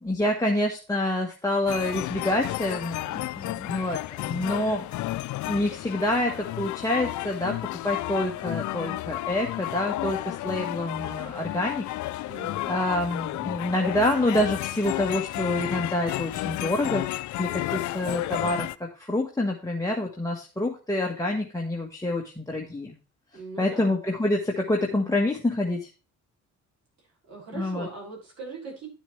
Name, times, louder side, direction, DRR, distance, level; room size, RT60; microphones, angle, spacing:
voice 1, 0.0-4.9 5.5-7.6 7.8-11.9 12.6-17.0 17.4-23.0 23.6-25.9 27.5-27.9, left 1 dB, 10° left, -1 dB, 1.5 m, -27 dB
sound 1, 1.7-18.8, left 16 dB, 75° left, 0.5 m, -32 dB
voice 2, 12.3-12.7 23.3-23.9 27.2-28.9, right 4 dB, 60° right, -2 dB, 6.4 m, -40 dB
11.5 x 7.2 x 3.3 m, 0.32 s
cardioid pair, 90°, 30 cm